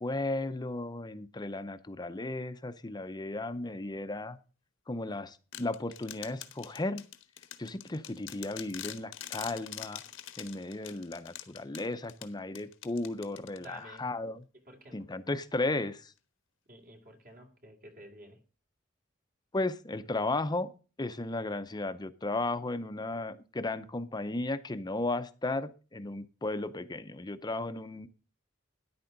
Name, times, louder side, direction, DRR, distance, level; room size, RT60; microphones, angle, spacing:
voice 1, 0.0-4.4 4.9-7.0 7.6-10.0 10.4-14.5 14.9-16.1 19.5-20.7 21.0-28.1, left 2 dB, 20° left, 0.7 m, -35 dB
sound 1, 5.5-14.0, left 11 dB, 85° left, 1.2 m, -45 dB
voice 2, 13.6-14.1 14.7-15.1 16.7-18.4, equal, 50° right, 2.6 m, -51 dB
13.0 x 10.5 x 3.9 m
head